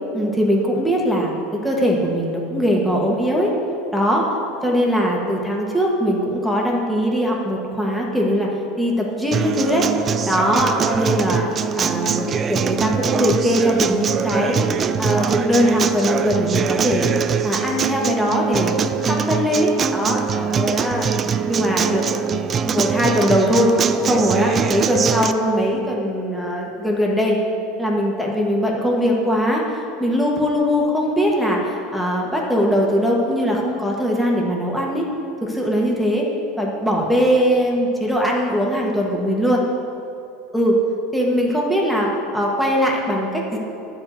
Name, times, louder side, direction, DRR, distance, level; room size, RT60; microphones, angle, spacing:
voice 1, 0.1-1.3 1.6-3.5 3.9-4.3 4.6-8.5 8.8-9.8 10.2-11.4 11.8-14.6 15.0-17.1 17.4-18.7 19.1-21.1 21.5-22.1 22.6-23.7 24.1-27.4 27.8-35.0 35.4-36.3 36.6-39.6 40.5-40.8 41.1-43.6, equal, ahead, -2 dB, 1.4 m, -20 dB
Acoustic guitar, 9.3-25.3, right 6 dB, 25° right, 0.4 m, -22 dB
10.5 x 4.7 x 8.0 m, 2.7 s
supercardioid pair, 140°, 0 cm